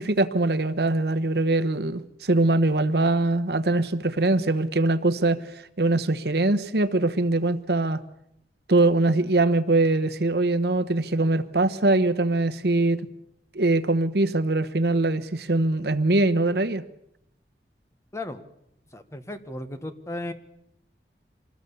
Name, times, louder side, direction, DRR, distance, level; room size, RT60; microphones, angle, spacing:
voice 1, 0.0-5.4 5.8-8.0 8.7-13.0 13.5-16.8, right 2 dB, 65° right, 12 dB, 1.1 m, -22 dB
voice 2, 18.1-18.5 18.9-20.3, left 1 dB, 15° left, 9 dB, 1.3 m, -35 dB
25.5 x 20.0 x 7.0 m, 0.78 s
head